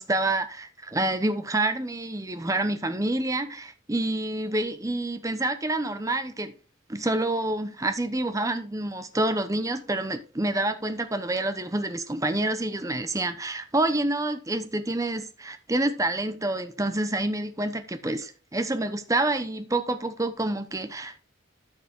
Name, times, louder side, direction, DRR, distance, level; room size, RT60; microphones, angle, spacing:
voice 1, 0.0-6.5 6.9-21.2, right 2 dB, 15° right, 0.8 m, -28 dB
13.5 x 4.8 x 3.6 m
head